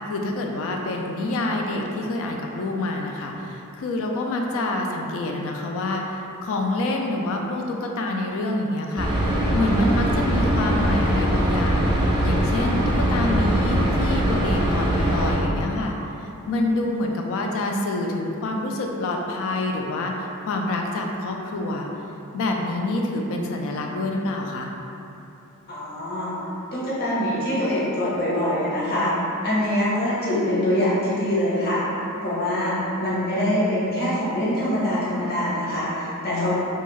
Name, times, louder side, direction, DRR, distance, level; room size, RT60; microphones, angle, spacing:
voice 1, 0.1-11.9 12.2-21.9 22.3-24.7 36.3-36.6, left 2 dB, 65° left, 2 dB, 0.3 m, -27 dB
sound 1, 9.0-15.4, right 1 dB, 20° right, 0.4 m, -22 dB
voice 2, 25.7-26.4 26.7-29.1 29.4-31.9 32.2-36.6, left 1 dB, 45° left, -9 dB, 0.8 m, -24 dB
2.6 x 2.3 x 3.0 m, 2.9 s
head